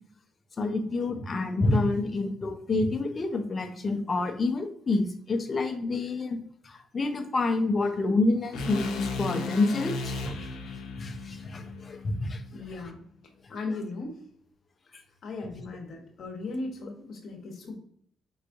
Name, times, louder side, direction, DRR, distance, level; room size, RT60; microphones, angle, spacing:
voice 1, 0.6-6.4 6.6-10.5 11.0-12.4, left 2 dB, 35° left, 6 dB, 0.7 m, -28 dB
Reaper Horn, 8.5-12.7, left 4 dB, 90° left, 0.6 m, -35 dB
voice 2, 12.5-13.0 13.5-14.2 15.2-17.8, left 3 dB, 60° left, 2 dB, 1.1 m, -37 dB
4.6 x 3.1 x 2.6 m, 0.63 s
cardioid pair, 90°, 0 cm